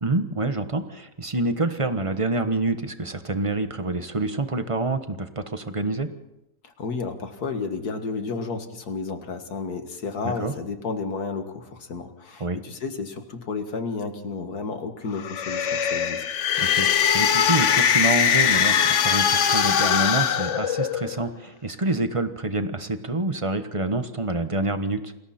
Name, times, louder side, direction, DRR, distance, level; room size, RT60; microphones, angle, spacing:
voice 1, 0.0-6.1 10.2-10.5 12.4-12.6 16.6-25.1, right 2 dB, 20° right, 9 dB, 1.2 m, -27 dB
voice 2, 6.6-16.2, left 4 dB, 80° left, 7 dB, 2.2 m, -32 dB
sound 1, 15.1-21.2, left 8 dB, 55° left, 1.1 m, -21 dB
29.0 x 20.5 x 4.4 m, 0.90 s
omnidirectional pair, 1.6 m